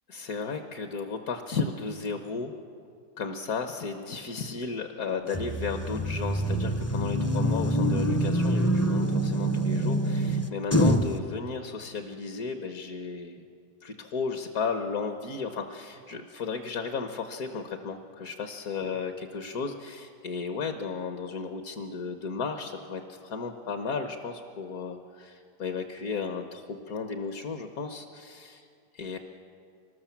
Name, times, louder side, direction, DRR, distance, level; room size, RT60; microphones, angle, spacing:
voice 1, 0.1-2.5 3.2-13.4 13.8-28.6 28.9-29.2, left 5 dB, 60° left, 6 dB, 1.5 m, -34 dB
sound 1, 5.3-11.2, right 1 dB, 20° left, 0.3 m, -25 dB
24.5 x 19.5 x 7.3 m, 2.4 s
omnidirectional pair, 1.8 m